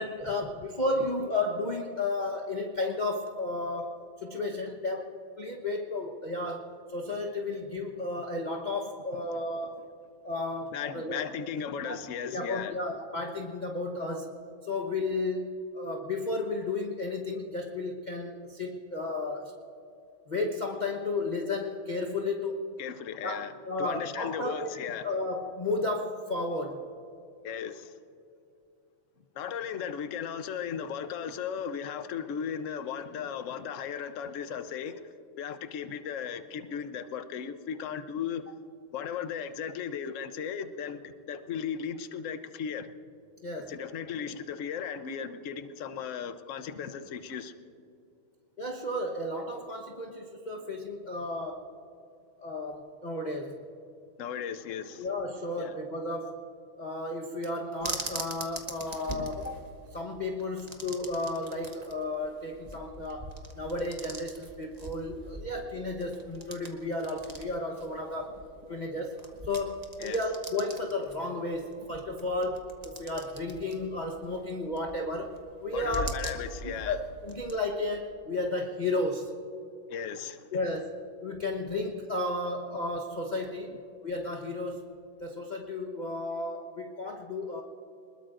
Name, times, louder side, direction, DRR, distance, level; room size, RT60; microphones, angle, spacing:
voice 1, 0.0-9.8 10.2-11.2 11.8-11.9 12.3-14.3 14.6-19.6 20.3-22.7 23.2-24.7 25.0-26.8 43.4-43.7 48.6-51.7 52.4-53.6 55.0-56.4 56.8-68.4 68.7-69.2 69.4-75.3 75.6-76.1 76.6-77.0 77.2-79.3 80.5-80.9 81.2-83.7 84.0-84.9 85.2-87.6, left 2 dB, 30° left, 0.8 m, -33 dB
voice 2, 10.7-12.8 22.8-23.5 23.8-25.0 27.4-28.0 29.3-38.4 38.9-42.9 43.7-47.5 54.2-55.1 55.6-55.8 70.0-70.2 75.7-77.0 79.9-80.5, left 7 dB, 60° left, 0.8 m, -36 dB
sound 1, 57.8-77.6, right 1 dB, 25° right, 1.1 m, -43 dB
27.0 x 21.0 x 2.6 m
omnidirectional pair, 2.2 m